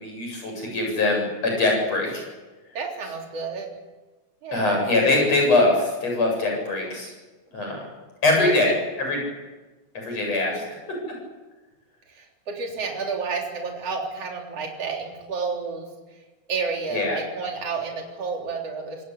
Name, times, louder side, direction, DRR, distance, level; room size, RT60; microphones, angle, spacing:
voice 1, 0.0-2.2 4.5-7.1 7.5-7.8 8.2-8.7 9.0-9.2 9.9-10.6 16.9-17.2, left 2 dB, 60° left, 1 dB, 9.4 m, -22 dB
voice 2, 2.7-3.7 4.4-4.8 8.4-8.7 10.5-10.6 12.1-15.9 16.5-19.0, right 4 dB, 55° right, 1 dB, 4.6 m, -30 dB
26.0 x 19.0 x 8.4 m, 1.2 s
omnidirectional pair, 3.3 m